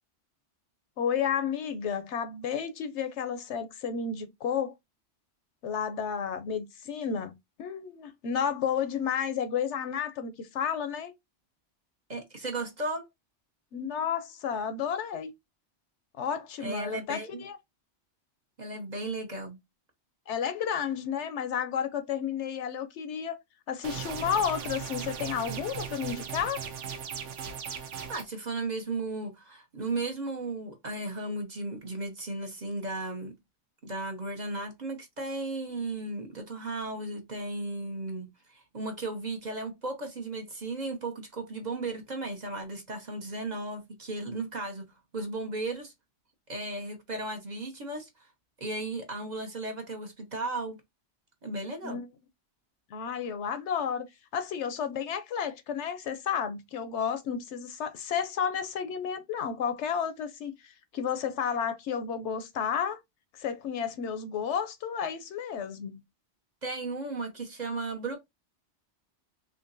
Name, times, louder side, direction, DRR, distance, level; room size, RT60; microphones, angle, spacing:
voice 1, 1.0-4.7 5.6-7.3 7.6-11.1 13.7-15.3 16.2-17.6 20.3-23.4 23.7-26.6 51.8-52.1 52.9-54.0 54.3-63.0 63.4-66.0, left 7 dB, 75° left, 0.9 m, -32 dB
voice 2, 12.1-13.1 16.6-17.4 18.6-19.6 27.8-33.3 33.8-45.9 46.5-48.3 48.6-50.8 51.4-52.0 66.6-68.2, right 2 dB, 45° right, 0.7 m, -35 dB
sound 1, 23.8-28.2, right 7 dB, 80° right, 1.0 m, -37 dB
3.6 x 2.8 x 2.5 m
omnidirectional pair, 1.2 m